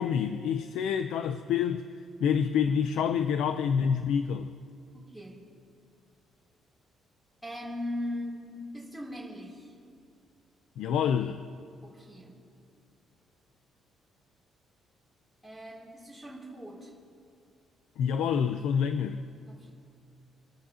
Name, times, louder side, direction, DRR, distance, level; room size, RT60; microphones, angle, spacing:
voice 1, 0.0-1.9 2.2-4.5 10.8-11.4 18.0-19.2, left 7 dB, 85° left, 0.5 m, -27 dB
voice 2, 4.9-5.5 7.4-9.7 11.8-12.4 15.4-16.9 19.4-19.7, left 1 dB, 5° left, 3.1 m, -39 dB
29.0 x 12.5 x 2.8 m
cardioid pair, 170°, 0 cm